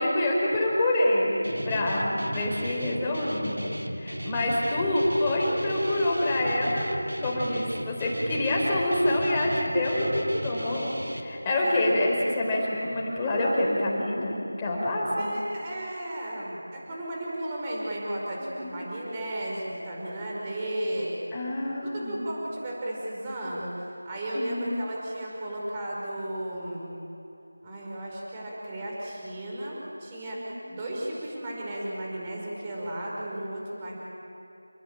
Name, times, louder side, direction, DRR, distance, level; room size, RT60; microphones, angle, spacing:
voice 1, 0.0-6.9 7.2-15.3 18.4-18.8 21.3-22.2 24.3-24.8 30.3-30.9, left 1 dB, 10° left, -4 dB, 4.8 m, -27 dB
Guitar, 1.4-11.2, equal, 85° right, 3.4 m, -35 dB
voice 2, 11.6-11.9 15.2-21.1 21.6-26.9 27.6-34.0, right 1 dB, 20° right, -4 dB, 5.4 m, -34 dB
29.5 x 20.0 x 9.1 m, 2.8 s
figure-of-eight pair, 170°, 0 cm